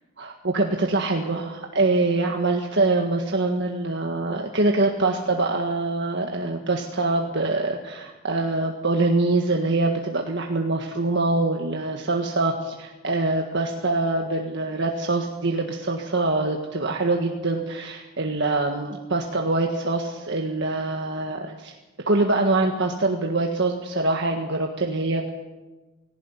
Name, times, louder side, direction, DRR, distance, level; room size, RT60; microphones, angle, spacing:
voice 1, 0.2-21.7 22.0-25.3, right 2 dB, 55° right, 2 dB, 1.7 m, -24 dB
19.5 x 17.5 x 9.9 m, 1.2 s
head